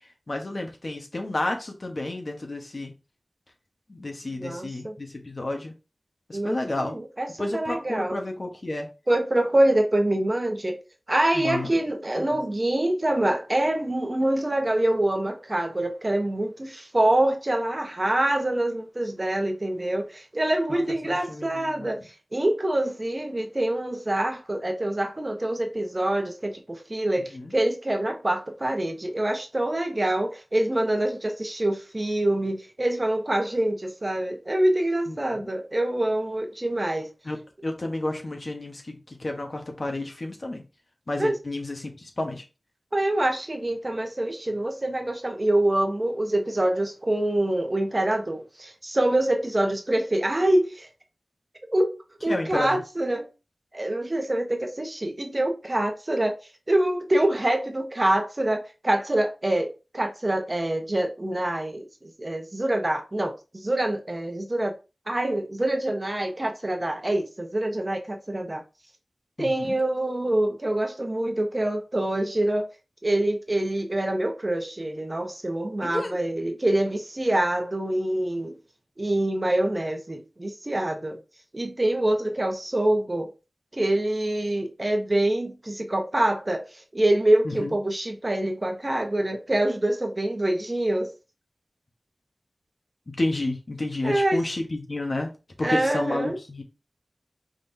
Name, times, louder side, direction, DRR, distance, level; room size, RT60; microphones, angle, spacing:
voice 1, 0.3-2.9 3.9-5.7 6.3-7.0 7.4-8.9 11.3-11.8 12.3-12.4 20.7-22.0 27.3-27.5 35.1-35.2 35.4-35.5 37.2-40.6 41.1-42.4 52.3-52.8 69.4-69.8 75.8-76.2 87.4-87.8 93.1-95.3 95.6-96.6, left 2 dB, 50° left, 1.1 m, -31 dB
voice 2, 4.4-5.0 6.3-8.2 9.1-10.8 11.1-37.1 41.2-41.4 42.9-50.9 51.7-53.3 53.7-56.4 56.7-64.7 65.1-68.6 69.4-72.7 73.0-78.6 79.0-81.2 81.5-83.3 83.7-91.1 94.0-94.4 95.6-96.4, right 1 dB, 30° right, 1.0 m, -25 dB
5.2 x 3.8 x 2.7 m
wide cardioid pair, 65°, 0 cm